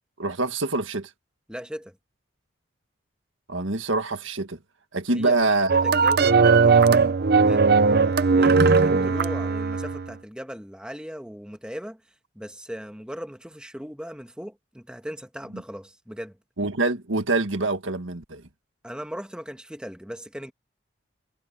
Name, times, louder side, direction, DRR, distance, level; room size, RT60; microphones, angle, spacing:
voice 1, 0.2-1.1 3.5-4.6 4.9-5.8 15.5-15.6 16.6-18.5, right 3 dB, 75° right, 1.8 m, -25 dB
voice 2, 1.5-1.9 5.1-5.4 5.7-7.0 7.3-7.7 8.4-12.0 12.3-16.4 18.8-20.5, equal, 5° right, 1.5 m, -38 dB
sound 1, 5.7-10.1, right 4 dB, 50° right, 0.6 m, -18 dB
head